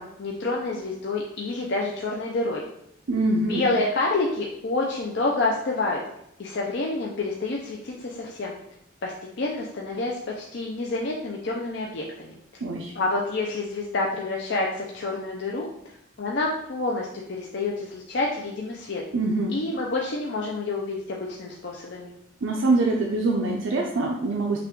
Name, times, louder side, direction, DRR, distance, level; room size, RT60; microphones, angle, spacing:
voice 1, 0.0-2.6 3.5-6.0 6.4-8.5 9.0-12.3 12.9-15.7 16.2-19.0 19.5-22.1, left 2 dB, 60° left, -2 dB, 0.5 m, -28 dB
voice 2, 3.1-3.7 12.6-12.9 19.1-19.6 22.4-24.6, right 2 dB, 75° right, 0 dB, 0.5 m, -24 dB
5.6 x 2.4 x 3.6 m, 0.78 s
head